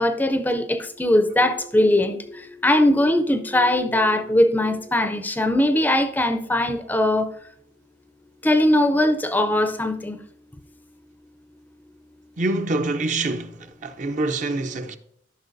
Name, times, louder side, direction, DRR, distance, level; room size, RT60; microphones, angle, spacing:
voice 1, 0.0-7.3 8.4-10.2, left 1 dB, 10° left, 0.4 m, -20 dB
voice 2, 12.4-15.0, right 2 dB, 45° right, 0.5 m, -26 dB
13.0 x 5.8 x 2.6 m
head